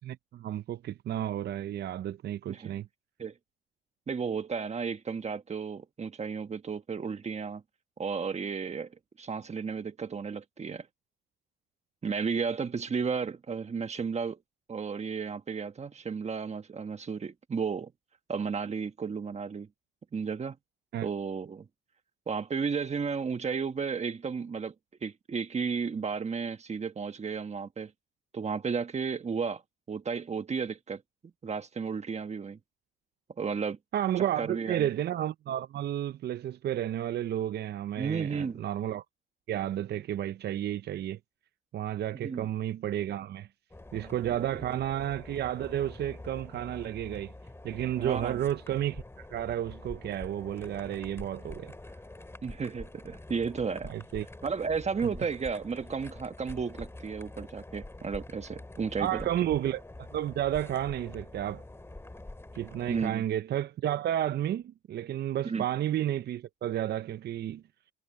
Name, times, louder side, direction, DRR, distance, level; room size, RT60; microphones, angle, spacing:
voice 1, 0.0-2.9 20.9-21.1 33.9-39.0 39.5-41.2 41.7-43.5 43.9-47.3 47.6-51.7 53.8-54.3 59.0-59.8 60.1-61.6 62.5-67.6, right 11 dB, 55° right, 0.5 m, -32 dB
voice 2, 2.5-2.8 3.2-3.3 4.1-7.6 8.0-8.9 9.2-10.9 12.0-14.4 14.7-17.9 18.3-19.7 20.1-20.6 21.0-21.7 22.3-24.7 25.0-27.9 28.3-29.6 29.9-31.0 31.4-32.6 33.4-33.8 34.2-34.9 38.0-38.6 42.1-42.5 44.4-44.8 48.0-48.4 52.4-53.9 54.4-59.3 62.9-63.3 65.4-65.7, right 5 dB, 35° right, 1.4 m, -33 dB
sound 1, 43.7-63.1, left 2 dB, 10° left, 3.0 m, -46 dB
cardioid pair, 90°, 20 cm